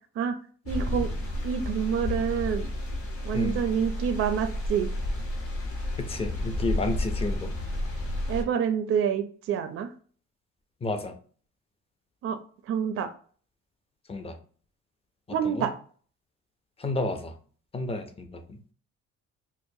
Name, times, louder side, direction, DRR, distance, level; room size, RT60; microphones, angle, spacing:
sound 1, 0.6-8.4, left 1 dB, 50° left, 0.9 m, -31 dB
voice 1, 0.7-1.1 1.4-2.7 3.2-4.9 8.3-9.9 12.2-12.4 12.7-13.1 15.3-15.7, right 8 dB, 50° right, 8 dB, 0.4 m, -27 dB
voice 2, 6.0-7.5 10.8-11.1 14.1-14.4 15.4-15.7 16.8-17.3 17.7-18.6, left 2 dB, 20° left, 6 dB, 0.4 m, -31 dB
4.6 x 2.0 x 2.6 m, 0.44 s
cardioid pair, 130°, 30 cm